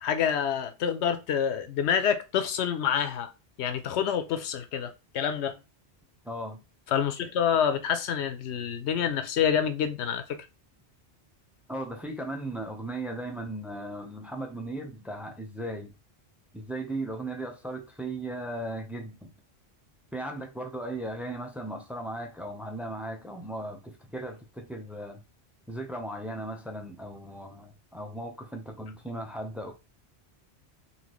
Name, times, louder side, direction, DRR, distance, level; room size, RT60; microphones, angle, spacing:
voice 1, 0.0-3.3 3.6-5.6 6.9-10.4, left 8 dB, 90° left, 0.9 m, -27 dB
voice 2, 6.2-6.6 11.7-15.9 16.5-19.3 20.1-25.2 25.7-29.7, right 1 dB, ahead, 0.5 m, -37 dB
4.1 x 2.8 x 3.0 m
omnidirectional pair, 1.1 m